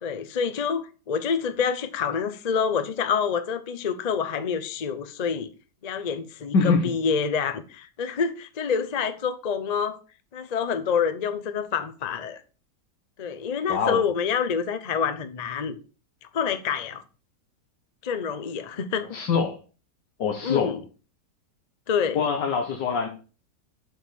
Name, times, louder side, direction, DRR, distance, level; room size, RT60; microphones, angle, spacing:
voice 1, 0.0-5.5 5.8-10.0 10.3-12.4 13.2-15.8 16.3-17.0 18.0-19.1 20.4-20.8 21.9-22.2, left 6 dB, 45° left, 0.5 m, -27 dB
voice 2, 6.5-6.9 13.7-14.0 19.1-19.6 20.2-20.8 22.1-23.1, left 5 dB, 85° left, 1.8 m, -24 dB
7.8 x 4.7 x 6.9 m
omnidirectional pair, 1.8 m